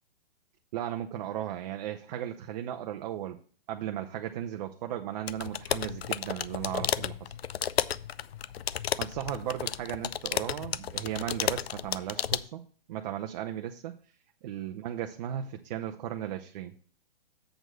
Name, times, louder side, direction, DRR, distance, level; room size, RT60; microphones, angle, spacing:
voice 1, 0.7-3.4 3.7-7.3 9.0-12.6 12.9-13.9 14.4-16.7, right 11 dB, 45° right, 5 dB, 0.7 m, -36 dB
sound 1, 5.3-12.5, left 10 dB, 85° left, 0.5 m, -33 dB
7.7 x 4.6 x 6.5 m, 0.43 s
hypercardioid pair, 130°, 30 cm